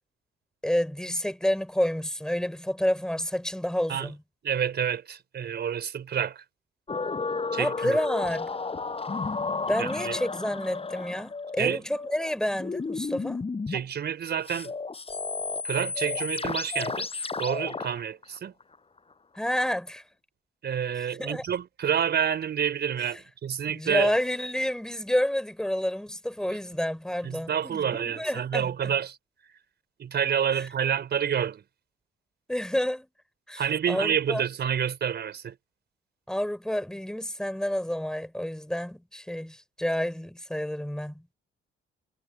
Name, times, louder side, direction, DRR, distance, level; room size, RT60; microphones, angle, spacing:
voice 1, 0.6-4.2 7.6-8.5 9.7-13.4 19.4-20.0 21.1-21.4 23.0-23.1 23.7-28.9 30.5-30.7 32.5-33.1 33.5-34.4 36.3-41.3, equal, 5° left, 3.7 m, -29 dB
voice 2, 4.4-6.4 7.5-8.0 9.8-10.2 11.6-11.8 13.7-14.7 15.6-17.1 17.4-18.5 20.6-24.1 27.2-29.2 29.4-29.5 30.0-31.6 33.6-35.6, right 8 dB, 55° right, 4.6 m, -28 dB
sound 1, 6.9-13.8 14.5-19.0 19.4-19.5, left 4 dB, 30° left, 7.7 m, -33 dB
cardioid pair, 90°, 20 cm